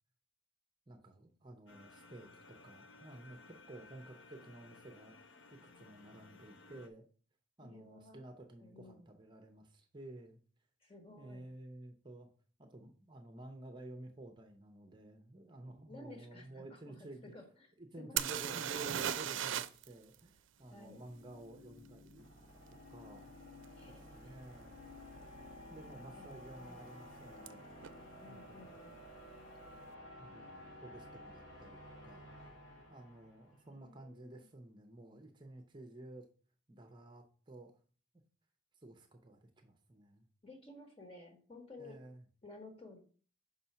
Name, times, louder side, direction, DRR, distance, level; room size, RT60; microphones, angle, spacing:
voice 1, 0.9-3.4 3.7-5.1 5.5-7.0 7.6-10.4 11.2-12.3 12.6-17.3 17.8-22.3 22.9-23.3 23.9-24.8 25.7-27.7 28.2-28.9 30.2-32.2 32.9-36.3 36.7-37.7 38.7-40.3 41.8-42.2, right 2 dB, 25° right, 4 dB, 0.7 m, -52 dB
sound 1, 1.7-6.9, left 3 dB, 80° left, 0.8 m, -58 dB
voice 2, 7.6-8.3 8.6-9.1 10.8-11.4 15.9-19.0 20.7-21.0 23.7-24.4 26.1-26.3 26.6-26.8 28.2-29.0 33.5-34.5 40.4-42.0 42.4-43.0, left 2 dB, 30° left, 3 dB, 1.5 m, -55 dB
sound 2, 18.2-19.9 20.1-20.2 23.6-23.7 24.4-24.6 24.8-25.4 27.5-27.6 27.8-27.9, right 10 dB, 80° right, 0.4 m, -36 dB
sound 3, 20.6-33.7, left 1 dB, 65° left, 3.0 m, -54 dB
5.6 x 4.2 x 5.6 m, 0.42 s
head